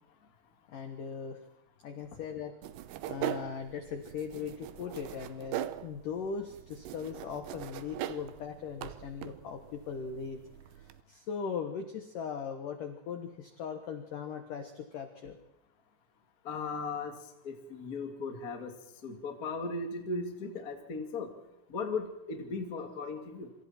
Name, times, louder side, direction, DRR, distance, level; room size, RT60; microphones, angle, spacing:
voice 1, 0.7-1.4 1.8-2.6 3.1-10.4 10.8-15.4, left 6 dB, 65° left, 6 dB, 2.1 m, -39 dB
sound 1, 2.6-11.0, right 12 dB, 75° right, 2.7 m, -41 dB
voice 2, 16.4-17.2 17.4-18.7 19.0-21.3 21.7-23.5, left 3 dB, 30° left, 4 dB, 1.6 m, -37 dB
26.5 x 26.0 x 4.4 m, 0.88 s
omnidirectional pair, 5.8 m